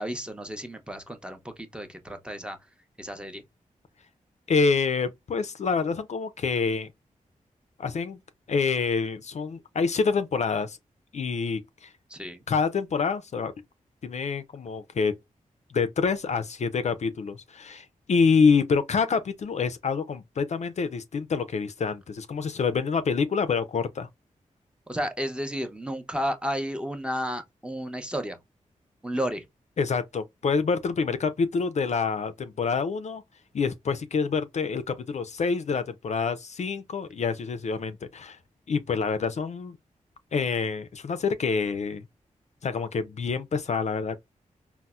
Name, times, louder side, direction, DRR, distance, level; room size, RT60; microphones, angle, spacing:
voice 1, 0.0-2.6 3.0-3.4 12.1-12.4 24.9-28.4 29.0-29.5, equal, 5° right, 0.6 m, -32 dB
voice 2, 4.5-6.9 7.8-8.2 8.5-10.8 11.1-11.9 12.5-13.5 14.0-15.1 15.7-24.1 29.8-33.2 33.5-38.4 38.7-39.8 40.3-42.0 42.6-44.3, left 5 dB, 55° left, 0.4 m, -27 dB
4.0 x 2.0 x 2.3 m
cardioid pair, 55°, 14 cm